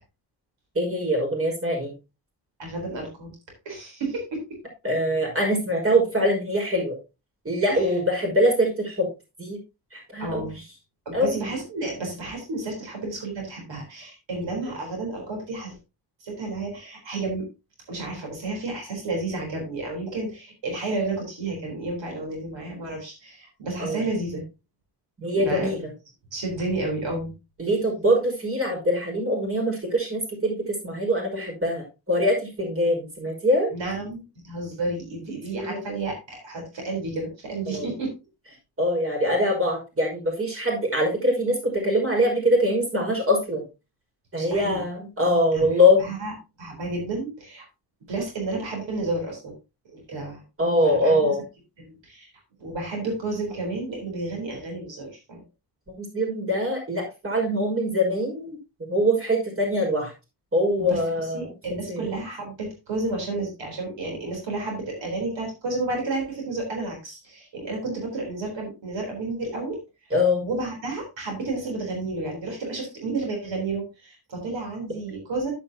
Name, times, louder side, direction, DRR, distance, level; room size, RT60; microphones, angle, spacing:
voice 1, 0.7-1.9 4.8-7.0 7.4-9.1 9.4-9.6 9.9-10.6 11.1-11.5 14.7-14.8 23.8-24.0 25.2-25.9 27.6-33.7 35.5-35.8 37.7-37.9 38.8-43.6 44.3-46.1 50.6-51.4 56.0-58.6 58.9-60.1 60.5-61.5 61.9-62.1 70.1-70.5, equal, 30° right, 0 dB, 5.4 m, -23 dB
voice 2, 2.6-3.3 3.7-4.4 7.7-7.9 10.2-10.6 11.1-15.8 16.2-17.4 17.9-24.4 25.3-25.8 26.3-27.3 33.7-38.1 44.4-44.8 45.5-45.7 46.0-46.3 46.6-47.6 48.1-49.5 49.9-50.4 50.8-51.3 51.8-52.3 52.6-55.4 60.8-61.0 61.3-69.8 70.4-75.5, right 2 dB, 85° right, 1 dB, 4.0 m, -31 dB
10.0 x 9.1 x 2.8 m, 0.26 s
cardioid pair, 105°, 43 cm